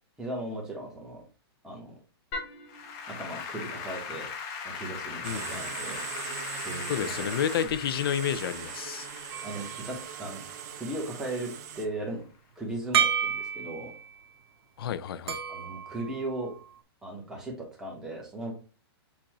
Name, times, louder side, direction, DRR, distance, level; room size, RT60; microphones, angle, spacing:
voice 1, 0.2-1.2 1.6-1.9 3.2-4.3 4.6-6.0 6.6-7.3 7.6-7.7 9.4-10.4 10.7-12.3 12.6-13.9 15.5-16.5 17.0-18.5, right 1 dB, 5° right, 1.2 m, -37 dB
Applause / Keyboard (musical), 2.3-11.6, left 5 dB, 25° left, 0.8 m, -40 dB
voice 2, 5.2-5.6 6.9-9.1 14.8-15.4, left 9 dB, 65° left, 0.5 m, -30 dB
sound 1, 5.2-11.9, right 9 dB, 40° right, 0.7 m, -40 dB
sound 2, 9.3-11.0 12.9-14.2 15.3-16.8, right 8 dB, 70° right, 0.9 m, -32 dB
6.9 x 2.5 x 3.0 m
hypercardioid pair, 160°, 13 cm